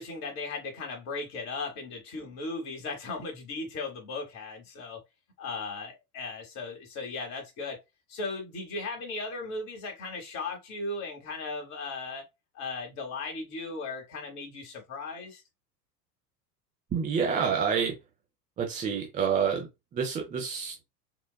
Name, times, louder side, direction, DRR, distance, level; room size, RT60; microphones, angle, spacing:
voice 1, 0.0-5.0 5.4-7.8 8.1-12.2 12.5-15.4, left 3 dB, 35° left, 0.9 m, -37 dB
voice 2, 16.9-17.9 18.6-20.8, right 6 dB, 15° right, 0.4 m, -28 dB
3.8 x 2.2 x 2.2 m
figure-of-eight pair, 80°, 49 cm